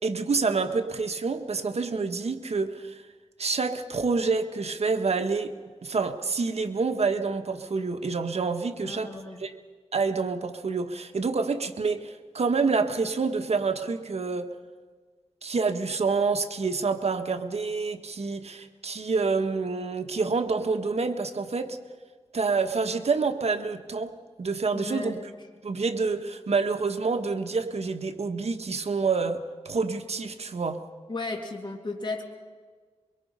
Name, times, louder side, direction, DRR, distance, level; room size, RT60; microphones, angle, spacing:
voice 1, 0.0-3.0 3.4-5.5 5.8-9.1 9.4-9.5 9.9-14.5 15.4-21.8 22.3-25.2 25.6-30.8, right 4 dB, 70° right, 7 dB, 1.4 m, -27 dB
voice 2, 8.8-9.5 24.7-25.2 31.1-32.2, left 3 dB, 45° left, 1 dB, 2.7 m, -34 dB
23.5 x 23.5 x 5.5 m, 1.5 s
wide cardioid pair, 75°, 11 cm